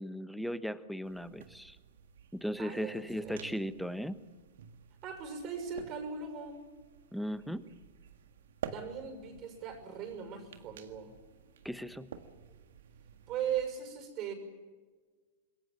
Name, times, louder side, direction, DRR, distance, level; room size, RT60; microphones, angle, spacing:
voice 1, 0.0-1.8 2.3-4.2 7.1-7.6 11.6-12.1, equal, ahead, 13 dB, 1.2 m, -37 dB
sound 1, 1.0-13.7, right 8 dB, 70° right, 1.8 m, -50 dB
voice 2, 2.6-3.4 5.0-6.6 8.7-11.1 13.3-14.3, right 7 dB, 40° right, 8 dB, 6.4 m, -39 dB
26.5 x 21.5 x 7.7 m, 1.4 s
hypercardioid pair, 100°, 0 cm